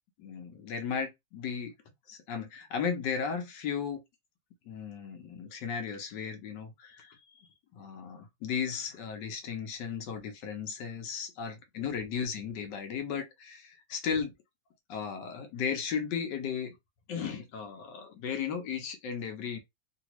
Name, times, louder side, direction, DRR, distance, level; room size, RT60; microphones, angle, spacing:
voice 1, 0.2-1.7 2.1-4.0 4.7-7.2 7.7-14.3 14.9-16.8 17.1-19.6, left 7 dB, 70° left, 1.3 m, -35 dB
3.1 x 2.7 x 2.9 m
omnidirectional pair, 2.2 m